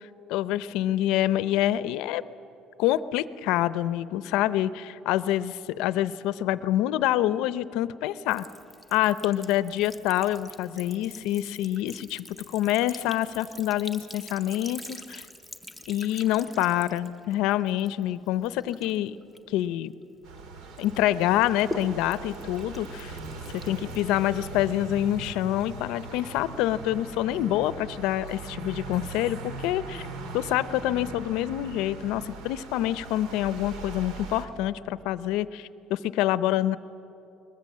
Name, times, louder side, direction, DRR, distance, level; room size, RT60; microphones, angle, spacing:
voice 1, 0.3-2.2 2.8-8.5 8.9-15.2 15.9-19.2 19.5-19.9 20.8-23.2 23.5-30.0 30.3-36.8, left 13 dB, 70° left, 15 dB, 0.6 m, -26 dB
Sink (filling or washing) / Trickle dribble, 8.3-20.4 20.8-24.6, left 1 dB, 5° right, 0.8 m, -45 dB
sound 1, 20.2-34.5, right 3 dB, 70° right, 1.9 m, -40 dB
22.0 x 21.0 x 7.4 m, 2.8 s
cardioid pair, 180°, 0 cm